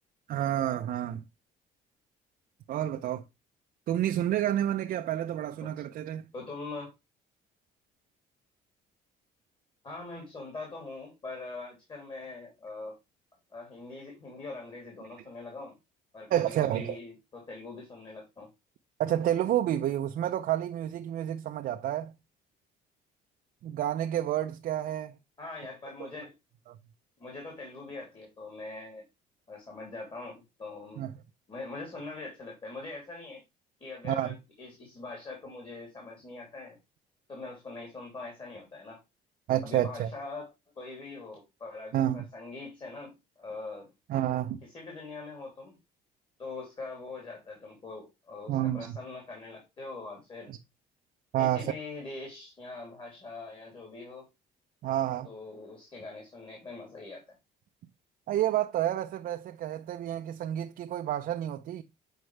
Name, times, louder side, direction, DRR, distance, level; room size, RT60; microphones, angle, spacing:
voice 1, 0.3-1.2 2.7-3.2 3.9-6.2 16.3-17.0 19.0-22.1 23.6-25.2 26.7-26.8 31.0-31.1 34.0-34.4 39.5-40.1 41.9-42.2 44.1-44.6 48.5-49.0 50.5-50.6 51.3-51.7 54.8-55.3 58.3-61.8, right 12 dB, 60° right, 0.6 m, -29 dB
voice 2, 6.3-6.9 9.8-13.0 13.5-15.8 16.1-18.5 25.4-26.3 27.2-29.0 29.5-31.0 31.5-33.4 33.8-36.8 37.3-39.0 39.6-40.5 40.8-43.9 44.7-45.8 46.4-50.5 51.4-54.3 55.2-57.3, left 3 dB, 30° left, 2.8 m, -42 dB
7.9 x 4.4 x 3.2 m
cardioid pair, 110°, 17 cm